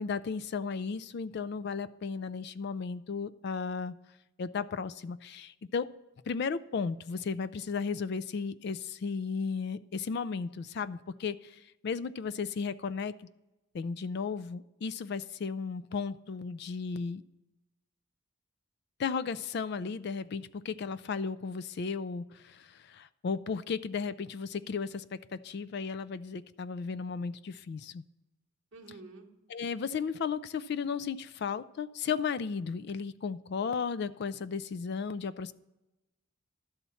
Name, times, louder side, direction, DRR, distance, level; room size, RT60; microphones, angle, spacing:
voice 1, 0.0-3.9 4.4-5.9 6.3-13.3 13.7-17.2 19.0-28.0 29.5-35.5, left 5 dB, 50° left, 15 dB, 0.3 m, -35 dB
voice 2, 28.7-29.3, right 3 dB, 55° right, 0 dB, 0.9 m, -48 dB
12.0 x 4.2 x 6.9 m, 0.99 s
head